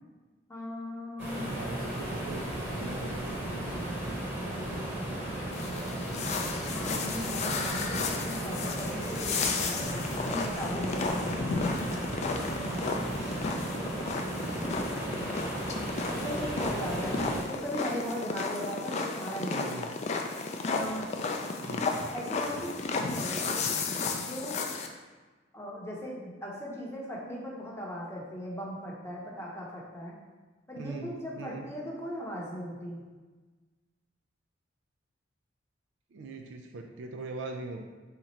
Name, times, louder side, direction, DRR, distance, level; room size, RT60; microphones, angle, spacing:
voice 1, 0.5-1.5 2.6-3.1 3.5-4.8 6.6-11.6 12.2-13.7 14.0-15.4 16.1-19.8 20.6-21.1 22.1-23.6 24.1-24.6 25.5-30.1 30.7-33.0, equal, 15° left, -4 dB, 0.7 m, -39 dB
sound 1, 1.2-17.4, right 1 dB, 10° right, 0.9 m, -35 dB
voice 2, 1.3-2.5 2.8-3.3 13.1-13.8 19.4-19.9 21.6-21.9 30.7-31.7 36.1-37.8, right 3 dB, 70° right, 3 dB, 0.4 m, -41 dB
sound 2, 5.5-24.9, left 4 dB, 35° left, 0.3 m, -33 dB
3.6 x 2.9 x 4.2 m, 1.3 s
head